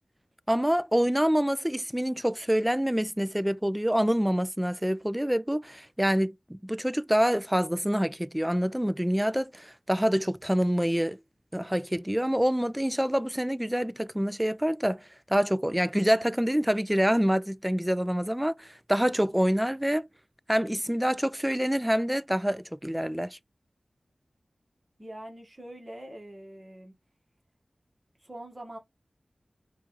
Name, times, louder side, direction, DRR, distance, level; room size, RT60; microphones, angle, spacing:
voice 1, 0.5-11.2 11.5-15.0 15.3-20.1 20.5-23.4, equal, 10° right, 0.3 m, -26 dB
voice 2, 25.0-26.9 28.2-28.8, right 1 dB, 40° right, 1.2 m, -43 dB
4.4 x 2.4 x 2.9 m
cardioid pair, 45°, 0 cm